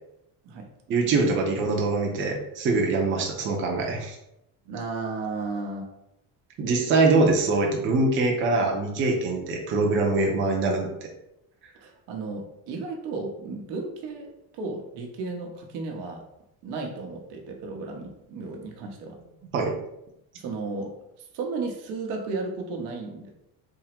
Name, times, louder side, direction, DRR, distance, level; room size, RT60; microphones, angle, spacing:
voice 1, 0.9-4.2 6.6-10.9 19.5-19.7, right 3 dB, 30° right, 0 dB, 0.6 m, -23 dB
voice 2, 4.6-5.9 11.8-16.2 16.6-19.2 20.3-20.9 21.2-23.3, right 3 dB, 90° right, 2 dB, 0.9 m, -34 dB
3.6 x 2.0 x 4.3 m, 0.83 s
cardioid pair, 170°, 40 cm